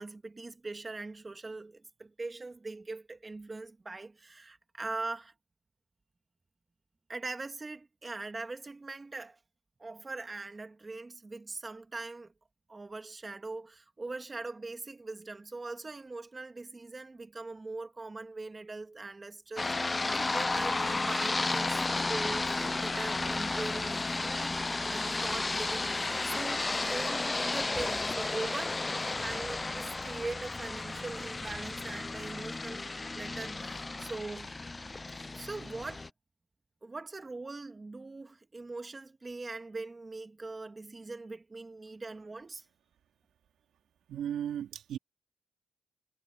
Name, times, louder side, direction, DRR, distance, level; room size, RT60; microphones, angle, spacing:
voice 1, 0.0-5.3 7.1-9.4 9.8-12.3 12.7-24.6 24.9-32.8 33.1-34.6 35.3-36.0 36.8-42.6, right 3 dB, 20° right, 2.1 m, -41 dB
sound 1, 19.6-36.1, left 3 dB, 20° left, 0.5 m, -33 dB
voice 2, 44.1-45.0, right 9 dB, 75° right, 2.5 m, -35 dB
cardioid pair, 120°, 0 cm